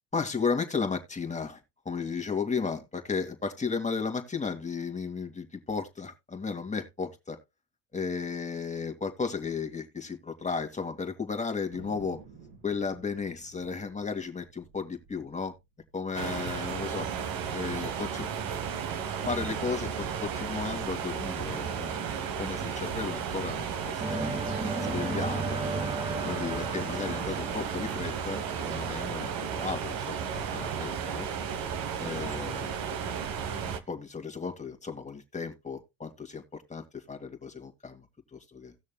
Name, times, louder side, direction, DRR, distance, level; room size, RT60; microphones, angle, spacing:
voice 1, 0.1-1.6 1.9-7.4 7.9-12.2 12.6-15.5 15.9-17.1 17.5-18.3 19.3-24.3 24.8-25.6 26.2-31.3 32.0-32.8 33.9-38.1 38.3-38.7, left 5 dB, 15° left, 2.1 m, -34 dB
Thunder, 11.7-16.6 16.8-16.9 17.1-17.7 18.2-19.3, right 5 dB, 75° right, 4.5 m, -53 dB
sound 1, 16.1-33.8, right 7 dB, 50° right, 1.2 m, -34 dB
sound 2, 24.0-29.9, right 2 dB, 15° right, 1.3 m, -36 dB
17.5 x 6.4 x 2.2 m
hypercardioid pair, 70°, 44 cm